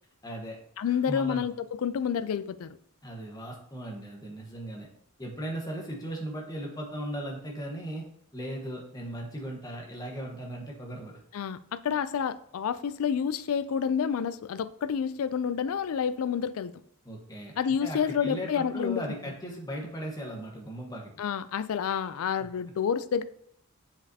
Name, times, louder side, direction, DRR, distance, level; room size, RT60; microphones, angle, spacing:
voice 1, 0.2-0.6 0.9-1.4 3.0-4.9 5.2-8.0 8.3-11.2 17.0-21.1, equal, 15° left, 1.2 m, -37 dB
voice 2, 0.8-2.8 11.3-16.7 17.6-19.0 21.2-23.2, left 7 dB, 70° left, 0.4 m, -29 dB
7.3 x 5.2 x 2.8 m
head